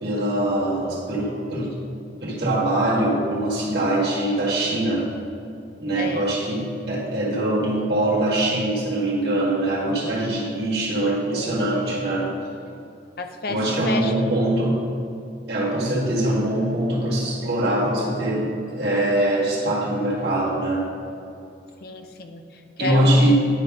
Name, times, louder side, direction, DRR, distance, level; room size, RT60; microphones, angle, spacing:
voice 1, 0.0-1.8 2.2-5.1 5.8-12.3 13.5-14.8 15.5-20.9 22.8-23.3, right 1 dB, 60° right, -6 dB, 1.9 m, -23 dB
voice 2, 6.0-6.3 11.3-11.9 12.2-12.3 13.2-14.1 21.8-23.3, left 2 dB, 55° left, 6 dB, 0.5 m, -31 dB
9.9 x 3.4 x 5.3 m, 2.7 s
head